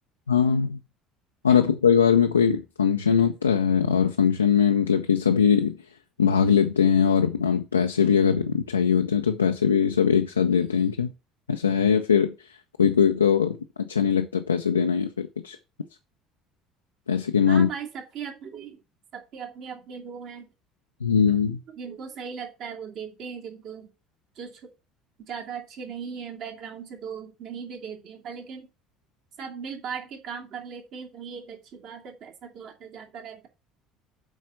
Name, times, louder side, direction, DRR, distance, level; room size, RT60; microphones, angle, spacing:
voice 1, 0.3-0.8 1.4-5.8 6.2-11.1 11.5-12.5 12.8-15.6 17.1-17.7 21.0-21.6, left 7 dB, 85° left, 0.5 m, -21 dB
voice 2, 17.5-18.8 19.1-20.5 21.8-23.9 24.3-24.7 25.3-28.7 29.4-33.5, right 6 dB, 55° right, 2.6 m, -38 dB
7.9 x 5.1 x 5.7 m
figure-of-eight pair, 60°, 0 cm